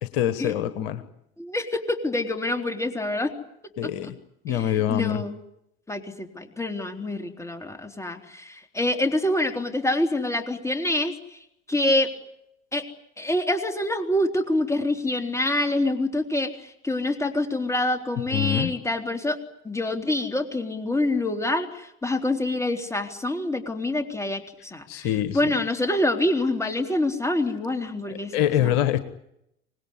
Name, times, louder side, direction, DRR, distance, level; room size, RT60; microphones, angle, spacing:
voice 1, 0.0-1.0 3.8-4.1 4.4-5.2 18.3-18.7 24.9-25.5 28.1-29.0, left 11 dB, 65° left, 12 dB, 1.4 m, -25 dB
voice 2, 1.4-3.3 3.8-3.9 4.5-5.4 5.9-11.4 11.7-12.1 12.7-12.9 13.2-19.4 19.6-28.4 28.6-28.7, left 1 dB, 10° left, 5 dB, 3.6 m, -26 dB
25.5 x 20.0 x 9.8 m, 0.81 s
figure-of-eight pair, 65°, 32 cm